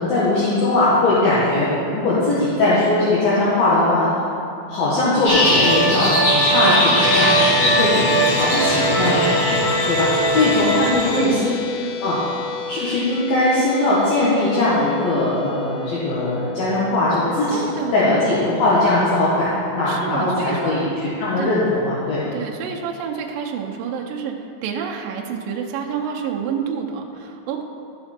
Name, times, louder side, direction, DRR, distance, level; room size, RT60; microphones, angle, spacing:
voice 1, 0.0-4.3 4.7-11.6 12.0-12.2 12.7-17.6 17.9-22.2, left 2 dB, 65° left, -9 dB, 3.0 m, -20 dB
sound 1, 5.2-11.2, left 1 dB, 45° left, 3.7 m, -22 dB
sound 2, 5.3-10.9, right 2 dB, 30° right, 0.6 m, -22 dB
sound 3, 7.0-20.6, left 5 dB, 85° left, 3.2 m, -30 dB
voice 2, 11.1-11.5 17.5-18.2 19.8-20.7 21.4-21.7 22.3-24.3 24.6-27.6, right 7 dB, 85° right, 0 dB, 2.0 m, -28 dB
13.5 x 6.9 x 4.4 m, 2.6 s
omnidirectional pair, 5.2 m